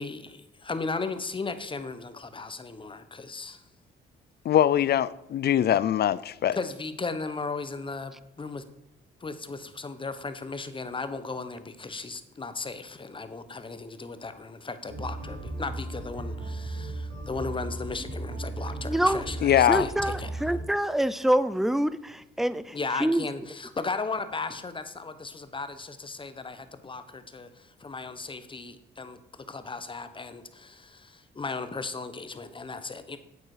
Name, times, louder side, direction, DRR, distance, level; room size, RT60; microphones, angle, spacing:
voice 1, 0.0-3.6 6.5-8.6 9.2-20.3 22.7-29.2 29.5-33.2, left 4 dB, 25° left, 1.0 m, -36 dB
voice 2, 4.4-6.6 19.4-19.9, left 10 dB, 55° left, 0.5 m, -22 dB
sound 1, 14.9-20.6, right 2 dB, 90° right, 3.6 m, -36 dB
voice 3, 18.8-19.2 19.7-22.7 23.0-23.2, right 1 dB, ahead, 0.5 m, -26 dB
8.8 x 8.6 x 4.9 m
cardioid pair, 90°, 20 cm